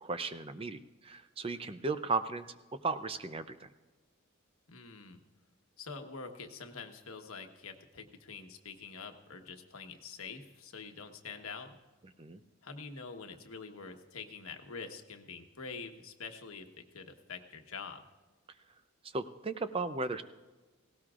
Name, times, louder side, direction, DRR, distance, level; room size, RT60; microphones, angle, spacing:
voice 1, 0.0-2.5 2.8-3.7 12.2-12.4 19.1-20.2, right 3 dB, 25° right, 11 dB, 0.5 m, -35 dB
voice 2, 4.7-5.2 5.8-11.8 12.6-18.0, left 4 dB, 75° left, 5 dB, 1.2 m, -46 dB
18.0 x 17.5 x 2.5 m, 1.2 s
head